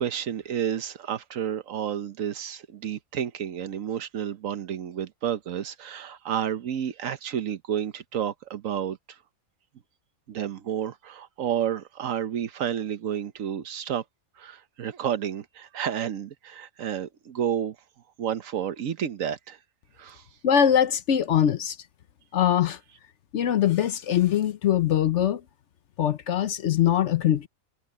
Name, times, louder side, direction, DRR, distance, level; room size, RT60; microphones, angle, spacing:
voice 1, 0.0-9.2 10.3-14.0 14.4-17.8 18.2-19.6 20.0-20.2, right 9 dB, 70° right, 1.2 m, -30 dB
voice 2, 20.4-21.8 22.3-22.8 23.3-25.4 26.0-27.5, left 10 dB, 60° left, 0.9 m, -22 dB
omnidirectional pair, 1.5 m